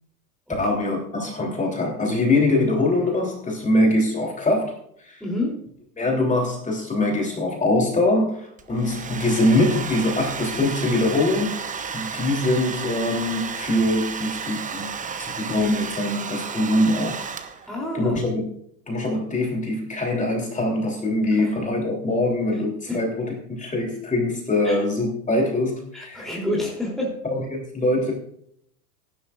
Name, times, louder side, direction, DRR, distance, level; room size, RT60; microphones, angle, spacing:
voice 1, 0.6-4.7 5.0-5.2 6.0-17.2 17.9-18.5 18.9-26.4 27.3-28.1, left 1 dB, 15° left, 0 dB, 3.3 m, -23 dB
voice 2, 5.2-5.6 17.7-18.2 22.9-23.0 24.6-24.8 25.9-27.2, left 1 dB, ahead, -3 dB, 3.3 m, -28 dB
Domestic sounds home sounds, 8.6-17.8, right 6 dB, 15° right, 1.0 m, -32 dB
18.0 x 11.0 x 2.5 m, 0.67 s
figure-of-eight pair, 90°, 46 cm